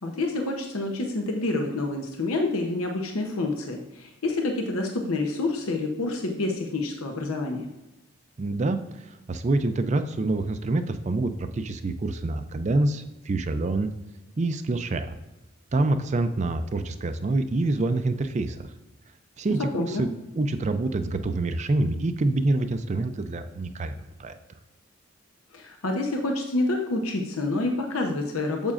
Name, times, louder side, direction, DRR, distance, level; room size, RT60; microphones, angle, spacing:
voice 1, 0.0-7.7 19.6-20.1 25.5-28.7, left 2 dB, 90° left, 2 dB, 0.8 m, -28 dB
voice 2, 8.4-13.9 14.4-15.1 15.7-18.7 19.4-20.1 20.4-24.3, right 2 dB, 35° right, 9 dB, 0.4 m, -26 dB
8.8 x 7.3 x 2.5 m, 1.0 s
head